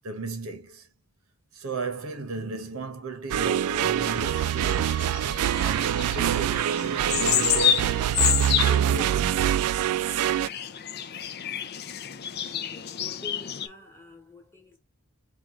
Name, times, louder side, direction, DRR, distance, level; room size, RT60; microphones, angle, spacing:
voice 1, 0.0-0.9 1.5-5.0 5.6-9.4, right 3 dB, 75° right, 1.0 m, -35 dB
sound 1, 3.3-10.5, right 10 dB, 90° right, 0.3 m, -25 dB
sound 2, 4.0-13.7, left 10 dB, 45° left, 0.5 m, -30 dB
voice 2, 12.3-14.8, left 3 dB, 10° left, 1.2 m, -48 dB
4.4 x 2.5 x 3.6 m
head